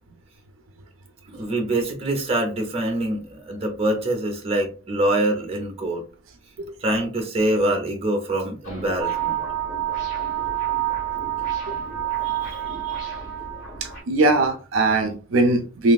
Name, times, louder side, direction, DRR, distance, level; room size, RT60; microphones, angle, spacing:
voice 1, 1.3-6.0 6.8-9.4, right 1 dB, 30° right, 0.7 m, -24 dB
sound 1, 8.6-14.0, equal, 40° left, 1.6 m, -39 dB
sound 2, 9.0-14.0, right 14 dB, 5° left, 1.0 m, -28 dB
voice 2, 12.2-13.1 13.8-15.9, right 2 dB, 70° right, 0.5 m, -22 dB
3.1 x 2.5 x 2.3 m
head